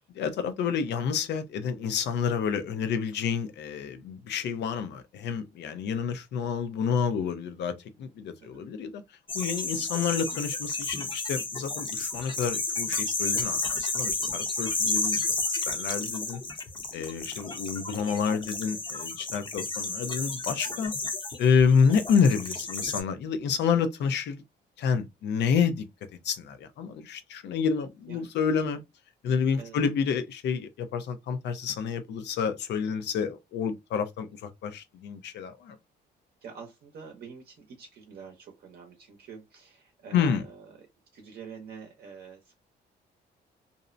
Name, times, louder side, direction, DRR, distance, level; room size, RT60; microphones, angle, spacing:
voice 1, 0.1-9.0 9.3-15.2 15.7-16.4 16.9-20.9 21.4-24.4 24.8-28.8 29.2-35.8 40.1-40.4, left 6 dB, 75° left, 0.5 m, -28 dB
sound 1, 9.3-23.0, left 3 dB, 25° left, 0.6 m, -32 dB
voice 2, 36.4-40.9 41.1-42.5, right 6 dB, 60° right, 0.7 m, -47 dB
2.6 x 2.0 x 2.5 m
cardioid pair, 100°, 18 cm